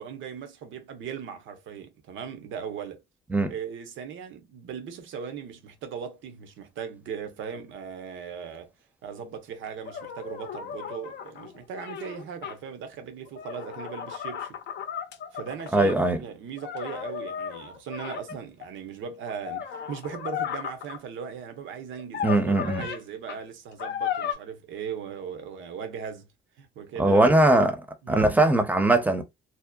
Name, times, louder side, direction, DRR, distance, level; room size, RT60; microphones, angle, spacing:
voice 1, 0.0-3.0 3.5-8.7 9.0-14.6 15.3-26.3 26.6-27.4 28.0-28.3, right 7 dB, 80° right, 0.7 m, -38 dB
sound 1, 9.9-12.6 13.3-16.0 16.6-18.7 19.3-21.0 22.0-23.0 23.3-23.4 23.8-24.3, left 8 dB, 60° left, 0.5 m, -35 dB
voice 2, 15.7-16.2 22.2-22.9 27.0-27.8 28.1-29.2, right 2 dB, 10° right, 0.6 m, -20 dB
2.7 x 2.0 x 2.2 m
cardioid pair, 90°, 20 cm